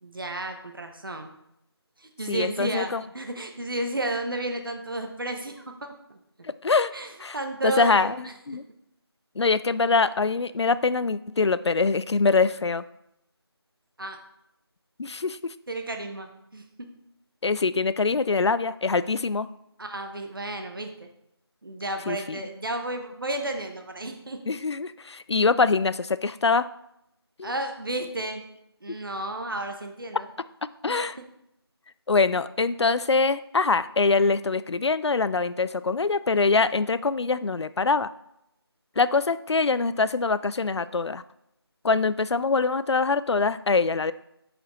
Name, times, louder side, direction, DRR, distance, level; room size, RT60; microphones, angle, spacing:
voice 1, 0.0-1.3 2.0-6.2 6.9-8.1 14.0-14.2 15.7-16.6 19.8-20.9 21.6-24.4 27.4-28.4 28.8-30.3 30.9-31.0, right 2 dB, 55° right, 4 dB, 1.0 m, -32 dB
voice 2, 2.3-3.0 6.4-6.9 7.2-7.4 7.6-8.6 9.4-12.8 15.0-15.5 17.4-19.5 22.1-22.4 24.5-26.7 27.4-27.5 30.8-31.2 32.1-38.1 39.0-41.2 41.8-44.1, left 4 dB, 90° left, 15 dB, 0.4 m, -24 dB
8.7 x 4.9 x 3.1 m, 0.82 s
figure-of-eight pair, 175°, 14 cm